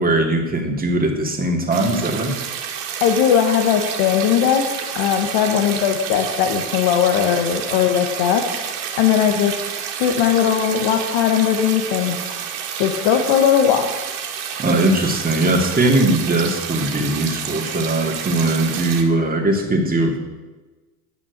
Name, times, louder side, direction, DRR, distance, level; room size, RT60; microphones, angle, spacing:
voice 1, 0.0-2.3 14.6-20.2, right 2 dB, 20° right, 2 dB, 2.5 m, -20 dB
sound 1, 1.7-19.0, right 8 dB, 65° right, 2.1 m, -29 dB
voice 2, 3.0-4.7 5.0-8.4 9.0-9.5 10.0-12.2 12.8-13.9, left 9 dB, 65° left, 3 dB, 1.5 m, -18 dB
10.5 x 6.2 x 8.1 m, 1.2 s
hypercardioid pair, 95°, 44 cm